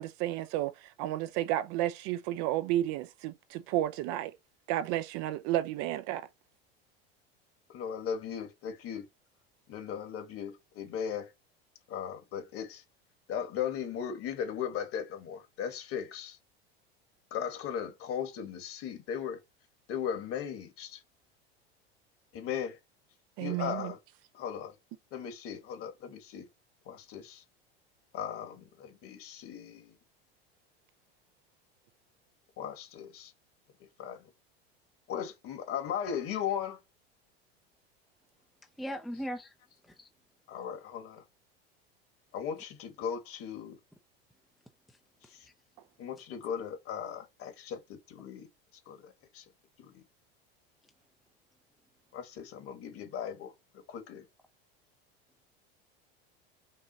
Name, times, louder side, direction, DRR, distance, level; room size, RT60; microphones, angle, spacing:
voice 1, 0.0-4.3 4.7-6.3 23.4-23.9, right 14 dB, 55° right, 0.6 m, -32 dB
voice 2, 7.7-9.0 9.7-11.3 11.9-12.8 13.3-16.4 17.3-19.4 19.9-21.0 22.3-22.8 23.4-24.0 24.4-24.7 25.1-26.5 26.9-27.4 28.1-29.9 32.6-33.3 34.0-34.2 35.1-36.8 40.5-41.2 42.3-43.8 46.0-48.5 48.9-49.4 49.9-50.0 52.1-53.5 53.9-54.2, left 8 dB, 50° left, 1.6 m, -37 dB
voice 3, 38.8-39.5 39.9-40.1 44.9-45.0 45.2-45.5, equal, ahead, 0.5 m, -39 dB
5.5 x 2.4 x 2.7 m
hypercardioid pair, 95°, 30 cm